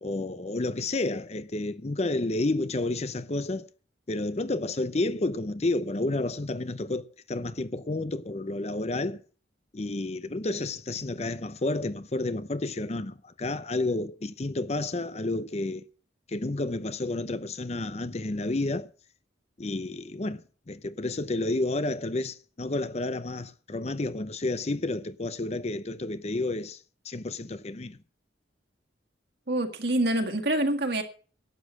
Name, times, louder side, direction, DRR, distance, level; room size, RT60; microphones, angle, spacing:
voice 1, 0.0-3.7 4.1-9.2 9.7-15.8 16.3-18.9 19.6-28.0, left 2 dB, 35° left, 0.6 m, -30 dB
voice 2, 29.5-31.0, right 1 dB, 60° right, 1.8 m, -26 dB
12.0 x 8.4 x 7.5 m
head